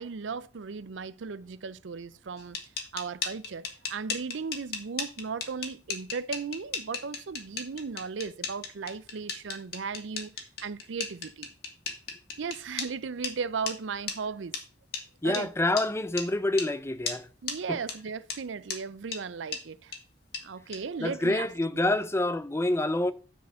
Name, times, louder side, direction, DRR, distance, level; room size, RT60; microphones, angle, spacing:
voice 1, 0.0-2.6 2.9-10.3 10.6-11.5 12.4-14.5 15.2-15.5 17.4-19.9 20.4-21.5 21.7-22.0, right 5 dB, 80° right, 0.5 m, -36 dB
sound 1, 2.4-12.9 13.2-13.3 13.7-13.8 14.1-14.2 14.5-14.6 14.9-15.0 15.3-15.4 15.8-15.9 16.2-16.3 16.6-16.7 17.1-17.2 17.5-17.6 17.9-18.0 18.3-18.4 18.7-18.8 19.1-19.2 19.5-19.6 19.9-20.0 20.3-20.4 20.7-20.8, left 6 dB, 60° left, 1.9 m, -34 dB
voice 2, 15.2-17.3 17.7-17.8 21.0-23.1, left 2 dB, 15° left, 0.5 m, -27 dB
9.5 x 4.5 x 6.3 m
head